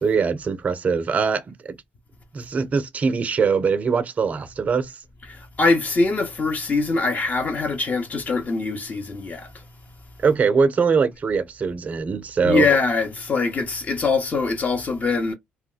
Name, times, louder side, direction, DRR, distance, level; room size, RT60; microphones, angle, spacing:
voice 1, 0.0-1.8 2.3-5.0 10.2-12.7, right 5 dB, 35° right, 0.4 m, -22 dB
voice 2, 5.3-9.7 12.4-15.3, left 4 dB, 35° left, 0.8 m, -23 dB
2.2 x 2.2 x 3.7 m
cardioid pair, 90°, 4 cm